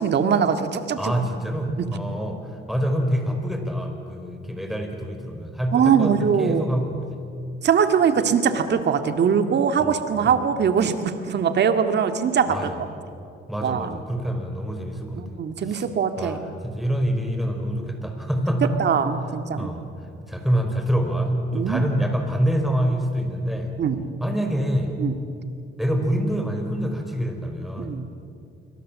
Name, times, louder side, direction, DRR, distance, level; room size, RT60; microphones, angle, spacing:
voice 1, 0.0-1.1 5.7-6.7 7.6-12.6 13.6-13.9 15.2-16.4 18.8-19.7 21.5-21.8 23.8-24.1 25.0-25.1 27.8-28.0, right 7 dB, 60° right, 8 dB, 2.0 m, -22 dB
voice 2, 1.0-7.2 9.8-10.0 10.2-10.4 12.5-12.8 13.5-15.2 15.7-15.8 16.2-18.8 19.6-23.7 24.2-24.9 25.8-28.0, equal, ahead, 4 dB, 5.0 m, -26 dB
27.0 x 23.5 x 7.6 m, 2.5 s
cardioid pair, 90°, 20 cm